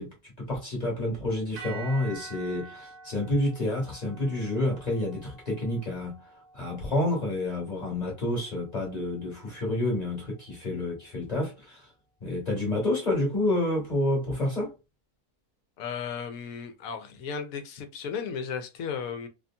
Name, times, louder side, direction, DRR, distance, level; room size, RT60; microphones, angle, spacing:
voice 1, 0.0-6.2 6.5-11.9 12.2-14.8, left 1 dB, 30° left, 1.0 m, -29 dB
sound 1, 1.5-9.8, right 5 dB, 85° right, 0.4 m, -48 dB
voice 2, 15.8-19.3, left 6 dB, 70° left, 1.0 m, -35 dB
2.8 x 2.6 x 2.2 m
omnidirectional pair, 1.7 m